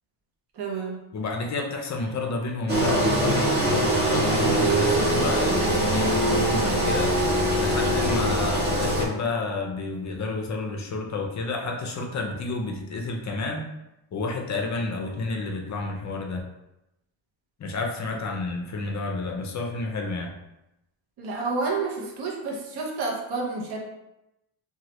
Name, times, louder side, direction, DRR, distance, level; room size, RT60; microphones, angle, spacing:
voice 1, 0.5-1.0 21.2-23.8, right 3 dB, 55° right, -1 dB, 0.7 m, -29 dB
voice 2, 1.1-7.2 7.6-13.7 14.1-16.4 17.6-20.3, left 3 dB, 40° left, 2 dB, 0.5 m, -30 dB
Engine, 2.7-9.1, right 1 dB, 20° right, 0.7 m, -22 dB
3.0 x 2.3 x 2.9 m, 0.91 s
cardioid pair, 135°, 46 cm